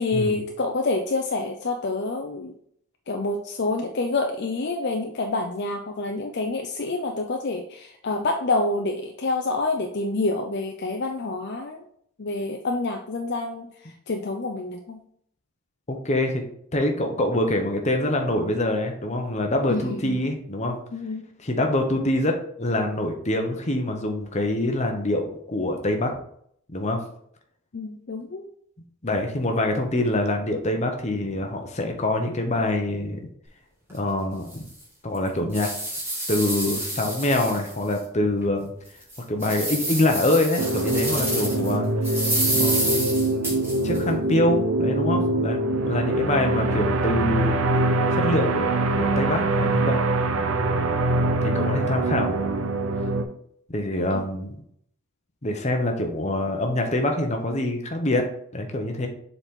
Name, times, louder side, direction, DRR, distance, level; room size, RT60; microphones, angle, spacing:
voice 1, 0.0-2.5 3.1-11.8 12.2-13.7 14.1-15.0 19.7-20.2 20.9-21.3 27.7-28.5 41.2-41.4 51.6-51.7 54.1-54.2, left 3 dB, 50° left, 3 dB, 0.6 m, -27 dB
voice 2, 15.9-16.4 16.7-20.8 21.4-26.1 26.7-27.0 29.0-33.3 33.9-34.6 35.0-35.7 36.3-38.7 39.3-42.2 42.6-45.6 45.9-47.6 48.1-48.6 49.0-50.0 51.4-52.5 53.7-54.6 55.4-59.1, left 1 dB, 30° left, 3 dB, 1.0 m, -25 dB
sound 1, 33.9-34.0 34.5-34.6 35.1-38.0 38.4-38.5 39.0-41.7 42.0-44.0, right 1 dB, 10° right, 2.2 m, -28 dB
sound 2, 40.6-53.2, right 2 dB, 70° right, 0.7 m, -24 dB
7.2 x 4.1 x 3.7 m, 0.68 s
head